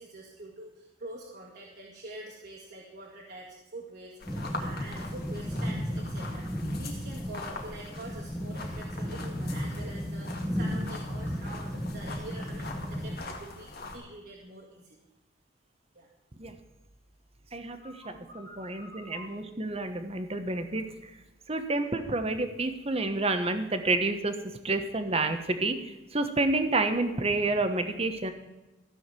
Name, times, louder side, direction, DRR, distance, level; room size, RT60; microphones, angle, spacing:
voice 1, 0.0-15.0 15.9-16.1 17.8-19.4, right 1 dB, 60° right, -5 dB, 2.2 m, -46 dB
sound 1, 4.2-14.0, left 3 dB, 55° left, 2.1 m, -43 dB
sound 2, 4.3-13.2, equal, ahead, 1.6 m, -34 dB
voice 2, 17.5-17.9 18.3-20.8 21.5-24.3 24.6-25.8 26.1-28.3, right 2 dB, 35° right, 8 dB, 1.2 m, -29 dB
15.0 x 6.4 x 7.6 m, 1.1 s
head